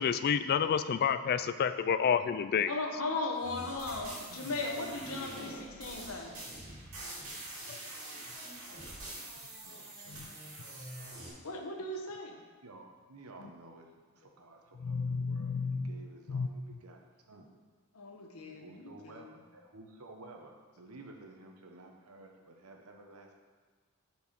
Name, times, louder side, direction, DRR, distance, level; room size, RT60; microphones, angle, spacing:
voice 1, 0.0-2.7 7.7-7.8 10.1-10.3 14.8-16.0 16.3-16.8, left 7 dB, 45° left, 12 dB, 0.3 m, -30 dB
voice 2, 2.7-6.3 11.3-12.4 17.9-19.3, left 2 dB, 75° left, 2 dB, 1.1 m, -37 dB
sound 1, 3.4-11.3, right 1 dB, 70° right, 2.4 m, -45 dB
voice 3, 9.6-10.3 12.6-13.9 14.2-15.6 15.8-17.0 17.3-17.5 18.4-23.4, right 2 dB, 85° right, 2 dB, 1.0 m, -53 dB
8.2 x 4.6 x 5.2 m, 1.5 s
head